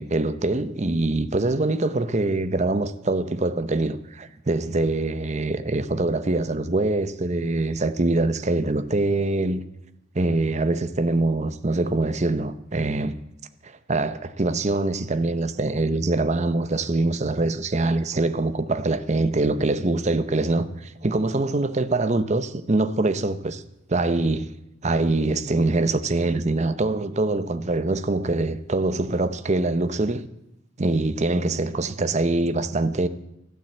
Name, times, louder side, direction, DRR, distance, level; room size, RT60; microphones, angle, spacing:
voice 1, 0.0-9.6 10.1-13.1 13.6-23.6 23.9-24.5 24.8-30.2 30.8-33.1, right 2 dB, 35° right, 0.8 m, -24 dB
13.0 x 9.2 x 7.9 m
head